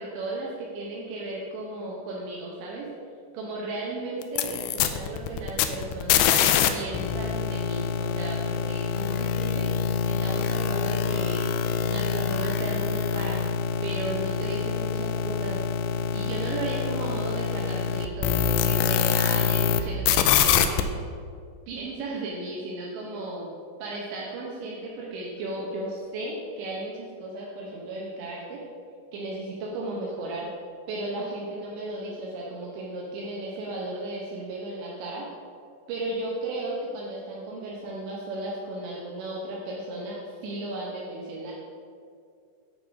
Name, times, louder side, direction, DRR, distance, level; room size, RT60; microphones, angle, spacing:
voice 1, 0.0-2.9 3.3-6.3 6.7-9.7 10.1-11.6 11.9-13.4 13.8-15.6 16.1-21.0 21.7-23.5 23.8-28.6 29.1-30.5 30.9-35.3 35.9-41.5, right 2 dB, 80° right, -4 dB, 3.2 m, -35 dB
sound 1, 4.2-6.7 6.9-19.8 20.1-20.8, left 8 dB, 85° left, 2.6 m, -25 dB
9.2 x 4.8 x 6.1 m, 2.3 s
omnidirectional pair, 5.3 m